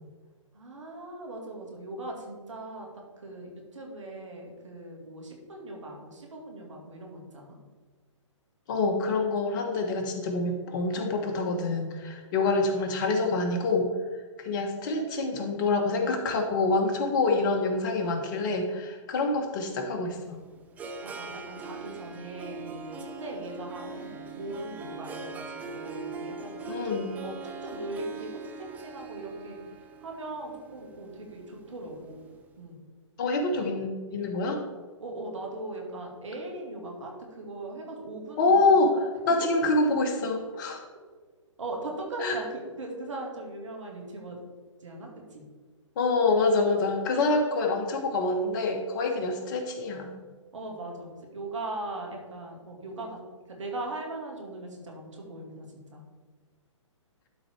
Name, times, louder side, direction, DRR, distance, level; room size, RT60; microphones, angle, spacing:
voice 1, 0.5-2.9 3.2-7.6 21.0-26.5 27.2-29.6 30.0-32.3 32.6-32.8 35.0-38.6 41.6-44.4 44.8-45.4 50.5-53.2 53.5-56.0, right 2 dB, 70° right, 0 dB, 2.3 m, -39 dB
voice 2, 8.7-13.9 14.4-20.4 26.7-27.2 33.2-34.6 38.4-38.9 39.3-40.8 42.2-42.4 46.0-50.2, left 3 dB, 40° left, 4 dB, 1.2 m, -26 dB
Harp, 20.1-32.3, right 4 dB, 10° right, 0.4 m, -41 dB
12.0 x 4.1 x 4.5 m, 1.4 s
figure-of-eight pair, 130°, 16 cm